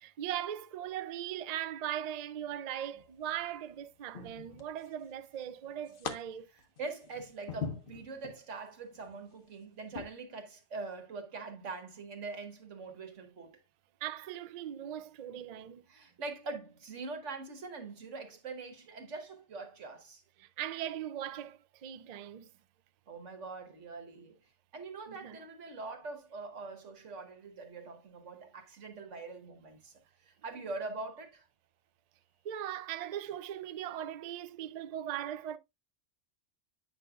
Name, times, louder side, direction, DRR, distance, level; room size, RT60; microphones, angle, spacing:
voice 1, 0.0-6.5 14.0-15.8 20.4-22.5 25.2-25.4 32.4-35.6, right 11 dB, 70° right, 0.4 m, -39 dB
sound 1, 3.0-3.4 4.1-5.0 5.4-6.1 6.6-8.4 8.9-9.2 9.9-10.1, left 6 dB, 50° left, 1.0 m, -42 dB
voice 2, 6.5-13.6 15.9-20.2 23.1-24.4 24.7-31.5, right 3 dB, 90° right, 1.6 m, -43 dB
8.7 x 5.5 x 2.3 m
omnidirectional pair, 1.2 m